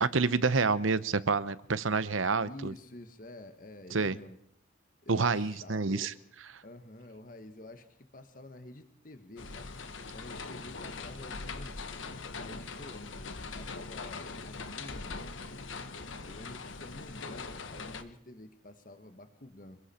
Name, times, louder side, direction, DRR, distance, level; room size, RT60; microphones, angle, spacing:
voice 1, 0.0-2.7 3.9-4.2 5.1-6.1, right 4 dB, 90° right, 15 dB, 0.9 m, -28 dB
voice 2, 2.5-4.4 5.0-6.1 6.6-9.7 10.1-11.9 12.3-15.3 16.2-19.8, left 1 dB, 45° left, 8 dB, 1.5 m, -49 dB
sound 1, 9.4-18.0, left 4 dB, 80° left, 1.3 m, -41 dB
27.5 x 21.5 x 4.4 m, 0.67 s
head